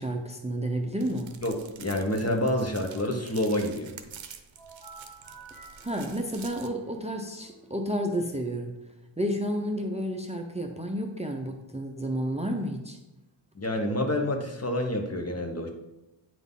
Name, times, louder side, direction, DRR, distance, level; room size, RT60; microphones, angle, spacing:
voice 1, 0.0-1.4 5.8-8.7 9.2-13.0, equal, 15° right, 3 dB, 0.6 m, -31 dB
sound 1, 1.0-6.7, right 7 dB, 70° right, 0.7 m, -48 dB
voice 2, 1.4-3.9 13.6-15.7, left 1 dB, 30° left, 2 dB, 0.9 m, -28 dB
sound 2, 4.6-8.2, right 4 dB, 10° left, 1.9 m, -51 dB
9.1 x 3.9 x 3.7 m, 0.97 s
wide cardioid pair, 95°, 47 cm